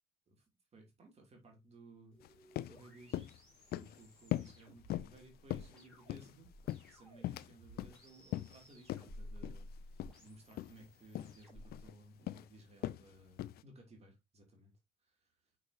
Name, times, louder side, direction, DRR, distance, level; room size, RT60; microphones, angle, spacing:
voice 1, 0.7-3.4 3.7-15.4, right 2 dB, 40° right, 2.7 m, -59 dB
sound 1, 2.1-11.9, left 1 dB, 5° left, 4.2 m, -55 dB
sound 2, 2.2-2.3 2.6-2.8 3.1-3.4 3.7-4.0 4.3-4.6 4.9-5.2 5.5-6.3 6.7-7.5 7.8-8.0 8.3-8.6 8.9-9.1 9.4-9.6 10.0-10.2 10.5-10.7 11.1-11.4 11.7-11.9 12.3-12.5 12.8-13.0 13.4-13.6, left 14 dB, 65° left, 0.6 m, -40 dB
6.3 x 6.0 x 2.7 m
cardioid pair, 110°, 17 cm